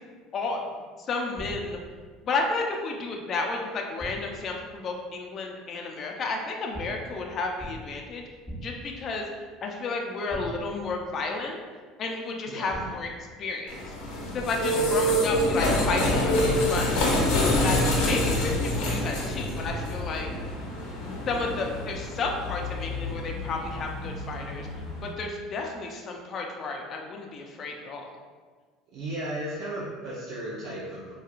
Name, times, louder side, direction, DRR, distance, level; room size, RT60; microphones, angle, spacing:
voice 1, 1.1-1.8 2.2-8.2 8.6-9.3 9.6-11.6 12.0-13.1 13.4-13.8 14.3-16.9 17.6-20.3 21.3-24.7 25.0-28.1, left 3 dB, 45° left, 1 dB, 0.5 m, -32 dB
sound 1, 1.4-1.9 4.0-4.5 6.7-7.2 7.6-8.0 8.5-9.0 10.3-10.9 12.7-13.2 15.4-16.0 17.6-18.1 19.6-20.2, right 1 dB, ahead, 0.7 m, -40 dB
voice 2, 12.5-12.9 14.6-15.0 18.0-18.3 28.9-31.1, right 1 dB, 65° right, -6 dB, 0.6 m, -35 dB
sound 2, 13.7-25.1, left 1 dB, 80° left, 0.7 m, -27 dB
4.3 x 2.3 x 2.4 m, 1.5 s
supercardioid pair, 100°, 0 cm